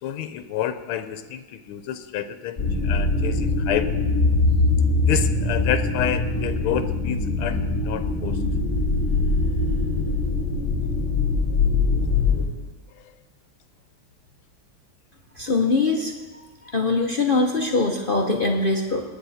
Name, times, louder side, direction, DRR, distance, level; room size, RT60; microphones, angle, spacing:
voice 1, 0.0-3.9 5.0-8.4 12.9-13.1, left 10 dB, 80° left, 10 dB, 1.6 m, -29 dB
sound 1, 2.6-12.4, left 3 dB, 25° left, 2.6 m, -22 dB
voice 2, 15.4-16.1 16.6-19.0, left 3 dB, 50° left, 1 dB, 0.6 m, -22 dB
20.0 x 9.5 x 4.2 m, 1.3 s
omnidirectional pair, 2.4 m